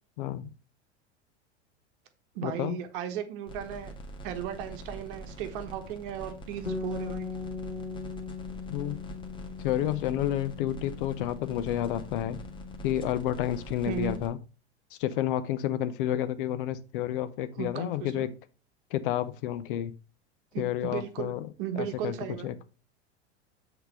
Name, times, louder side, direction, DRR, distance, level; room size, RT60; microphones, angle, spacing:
voice 1, 0.2-0.5 2.4-2.8 8.7-9.0 9.6-12.4 12.8-14.4 14.9-18.3 18.9-19.9 20.6-21.5 21.7-22.1 22.4-22.5, left 12 dB, 50° left, 13 dB, 0.6 m, -30 dB
voice 2, 2.3-3.9 4.2-7.3 13.9-14.2 17.6-18.3 20.5-21.3 21.6-22.7, right 9 dB, 50° right, 7 dB, 1.2 m, -36 dB
sound 1, 3.5-14.3, right 1 dB, 15° left, 1.4 m, -44 dB
Bass guitar, 6.7-12.9, left 5 dB, 85° left, 2.3 m, -39 dB
7.8 x 4.0 x 5.4 m, 0.34 s
figure-of-eight pair, 85°, 34 cm